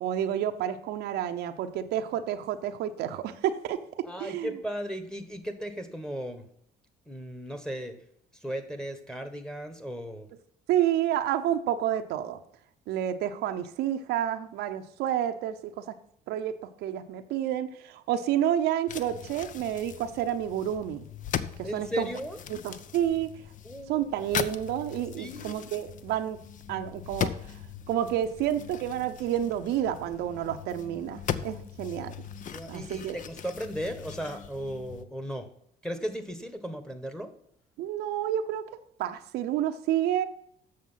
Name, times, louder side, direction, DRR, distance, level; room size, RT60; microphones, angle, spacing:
voice 1, 0.0-4.5 10.7-12.4 12.9-15.8 16.3-21.0 21.6-22.1 22.5-23.3 23.9-26.4 26.7-27.4 27.9-32.1 32.7-33.2 37.8-40.3, right 11 dB, 85° right, 7 dB, 0.7 m, -29 dB
voice 2, 4.0-6.5 7.1-8.0 8.3-10.3 21.6-22.4 23.6-24.3 25.2-25.6 32.5-35.5 35.8-37.3, equal, 5° left, 7 dB, 1.3 m, -36 dB
sound 1, 18.9-35.1, left 8 dB, 50° left, 0.6 m, -39 dB
7.7 x 6.6 x 5.6 m, 0.69 s
cardioid pair, 110°, 17 cm